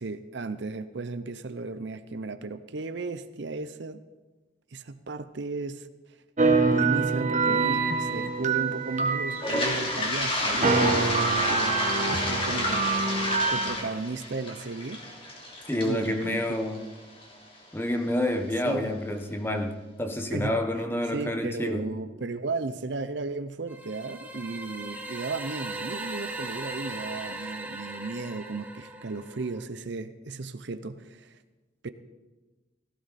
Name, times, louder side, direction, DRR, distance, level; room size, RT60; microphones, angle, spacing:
voice 1, 0.0-4.0 4.7-5.9 6.6-12.9 13.5-15.0 15.8-16.4 18.6-18.9 20.3-20.6 21.1-31.4 31.8-31.9, right 3 dB, 60° right, 12 dB, 0.6 m, -35 dB
sound 1, 6.4-10.2 10.6-13.7, right 4 dB, 35° right, 1.3 m, -25 dB
Toilet flush, 9.3-17.2, left 1 dB, 25° left, 3.0 m, -30 dB
voice 2, 15.7-16.8 17.7-21.9, left 1 dB, 10° left, 6 dB, 1.1 m, -28 dB
sound 2, 23.7-29.6, right 2 dB, 10° right, 1.2 m, -38 dB
17.0 x 15.5 x 4.2 m, 1.2 s
head